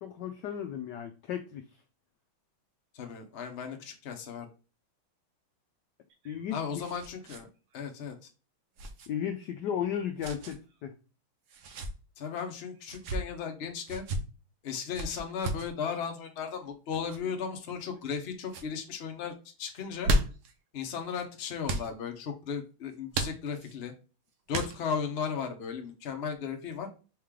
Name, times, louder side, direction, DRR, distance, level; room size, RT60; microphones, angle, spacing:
voice 1, 0.0-1.6 6.2-6.8 9.1-10.9, left 9 dB, 75° left, 6 dB, 1.0 m, -35 dB
voice 2, 2.9-4.5 6.5-7.5 7.7-8.3 12.2-14.0 14.6-20.1 20.7-23.9 24.5-26.9, left 6 dB, 55° left, 4 dB, 0.7 m, -36 dB
sound 1, 6.1-7.4 7.7-7.8 8.8-9.1 10.2-10.6 11.5-11.9 12.8-13.2 13.9-14.2 14.9-15.7 16.9-17.2 17.8-18.2 18.5-18.7 19.8-20.5 21.6-21.9 23.1-23.8 24.5-25.0, right 1 dB, 60° right, 1.1 m, -33 dB
4.7 x 3.2 x 3.5 m, 0.34 s
omnidirectional pair, 2.3 m